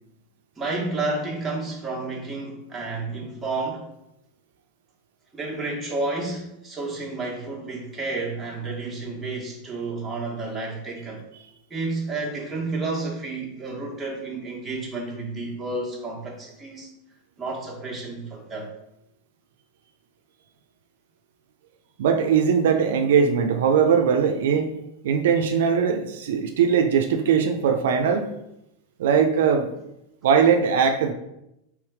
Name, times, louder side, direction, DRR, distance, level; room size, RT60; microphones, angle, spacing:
voice 1, 0.6-3.8 5.3-11.2 11.7-16.9 17.4-18.7, right 3 dB, 10° right, -4 dB, 1.3 m, -31 dB
voice 2, 22.0-24.7 25.0-28.3 29.0-29.7 30.2-31.1, right 6 dB, 80° right, 5 dB, 0.4 m, -20 dB
3.4 x 3.1 x 4.8 m, 0.84 s
supercardioid pair, 130°, 0 cm